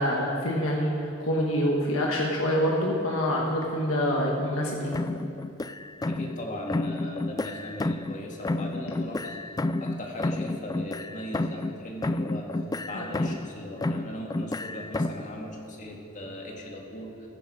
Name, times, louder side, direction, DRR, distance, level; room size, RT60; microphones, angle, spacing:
voice 1, 0.0-5.0 12.9-13.1, equal, 75° left, -2 dB, 1.6 m, -26 dB
sound 1, 4.9-6.4 6.7-8.2 8.4-11.8 12.0-13.5 13.8-15.3, left 2 dB, 20° left, 0.3 m, -30 dB
voice 2, 6.0-17.3, left 1 dB, 40° left, 0 dB, 2.0 m, -38 dB
15.0 x 13.5 x 5.0 m, 3.0 s
head